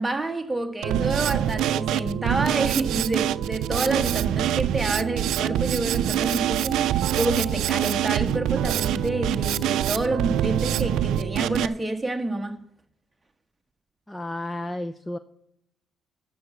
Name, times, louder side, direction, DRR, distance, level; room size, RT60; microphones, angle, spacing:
voice 1, 0.0-12.6, right 2 dB, 10° right, 1.3 m, -28 dB
Drum kit, 0.8-11.7, right 11 dB, 85° right, 0.4 m, -25 dB
voice 2, 14.1-15.2, left 1 dB, 10° left, 0.5 m, -32 dB
13.0 x 5.9 x 6.9 m
cardioid pair, 135°, 0 cm